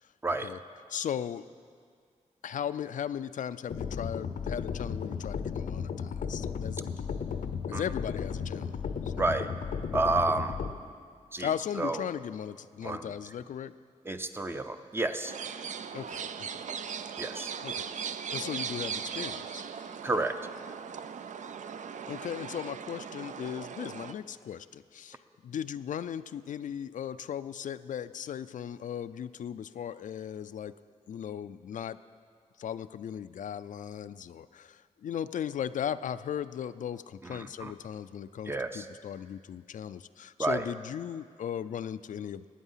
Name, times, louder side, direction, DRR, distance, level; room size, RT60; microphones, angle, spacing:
voice 1, 0.9-1.4 2.4-6.8 7.7-8.8 9.0-9.2 11.4-13.7 15.9-16.6 17.6-17.9 18.3-19.6 22.1-25.2 25.4-30.7 31.1-32.0 32.6-42.5, left 9 dB, 70° left, 13 dB, 0.4 m, -37 dB
sound 1, 3.7-10.7, left 6 dB, 90° left, 0.8 m, -34 dB
voice 2, 9.2-9.5 9.9-10.6 11.3-11.5 11.8-12.1 12.8-13.1 14.1-15.4 17.2-17.5 20.0-20.4 37.2-37.7 38.5-38.9 40.4-40.6, right 2 dB, 15° right, 8 dB, 0.6 m, -30 dB
sound 2, 15.2-24.1, right 7 dB, 65° right, 0.5 m, -38 dB
19.5 x 9.4 x 5.6 m, 2.1 s
wide cardioid pair, 155°, 13 cm